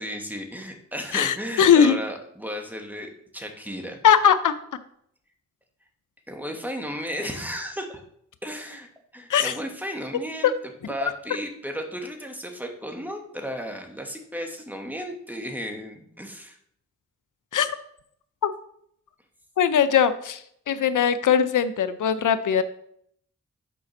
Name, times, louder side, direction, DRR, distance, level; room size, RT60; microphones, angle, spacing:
voice 1, 0.0-4.0 6.3-8.0 8.4-8.9 9.1-10.5 10.9-16.6, equal, 5° right, 3 dB, 1.7 m, -34 dB
voice 2, 1.1-2.0 4.0-4.5 9.3-9.5 17.5-17.7 18.4-18.5 19.6-22.6, left 8 dB, 90° left, 12 dB, 0.6 m, -20 dB
6.9 x 5.1 x 6.1 m, 0.69 s
cardioid pair, 55°, 30 cm